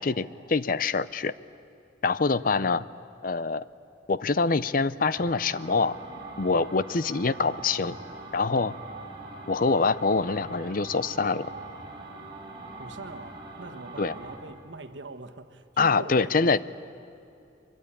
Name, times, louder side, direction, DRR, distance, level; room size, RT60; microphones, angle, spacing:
voice 1, 0.0-1.3 2.0-2.8 3.2-3.6 4.1-6.0 6.4-8.0 8.3-8.7 9.5-11.5 14.0-14.1 15.8-16.6, left 4 dB, 50° left, 17 dB, 0.6 m, -25 dB
sound 1, 5.1-14.4, right 3 dB, 30° right, 4.7 m, -42 dB
voice 2, 12.8-16.6, right 2 dB, 80° right, 7 dB, 1.4 m, -43 dB
24.0 x 23.5 x 9.8 m, 2.6 s
head